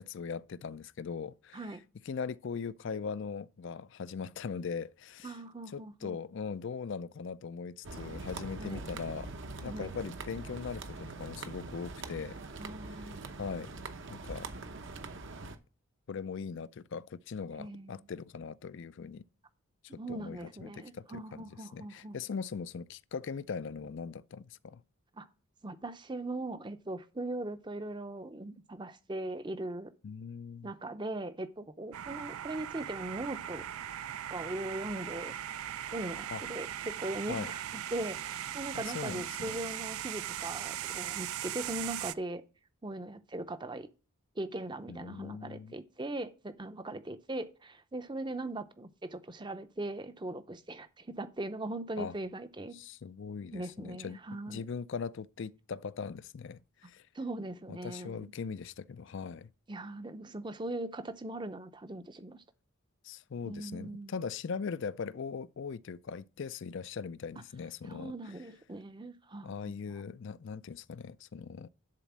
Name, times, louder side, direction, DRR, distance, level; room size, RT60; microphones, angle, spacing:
voice 1, 0.0-1.6 2.1-5.3 5.7-12.4 13.4-13.7 14.1-14.5 16.1-19.2 19.8-24.8 30.0-30.7 36.3-36.4 37.3-37.5 38.7-39.6 44.9-45.7 52.0-52.1 52.7-54.2 54.5-57.1 57.7-59.5 63.0-68.1 69.4-71.7, left 5 dB, 55° left, 0.4 m, -40 dB
voice 2, 5.2-6.2 8.6-8.8 9.6-9.9 12.6-13.3 17.6-18.1 19.9-22.2 25.1-25.3 25.6-29.9 30.6-33.6 34.3-35.3 35.9-42.4 42.8-43.9 44.4-52.8 53.5-54.6 57.1-58.3 59.7-62.4 63.4-64.1 67.8-70.0, right 2 dB, 20° right, 0.6 m, -40 dB
sound 1, 7.8-15.6, right 3 dB, 55° right, 0.8 m, -43 dB
sound 2, 31.9-42.1, right 11 dB, 75° right, 0.4 m, -39 dB
10.5 x 4.2 x 7.3 m
head